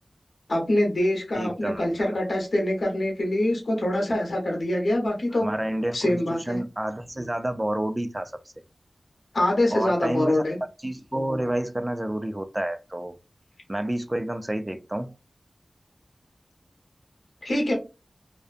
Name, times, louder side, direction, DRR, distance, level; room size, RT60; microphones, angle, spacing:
voice 1, 0.5-5.5 5.9-6.6 9.3-10.6 17.4-17.7, left 1 dB, 80° left, 0.9 m, -24 dB
voice 2, 1.4-2.1 5.4-8.3 9.7-10.4 10.8-13.2 13.7-15.1, right 1 dB, 20° right, 0.3 m, -29 dB
2.5 x 2.2 x 2.4 m
wide cardioid pair, 70°, 0 cm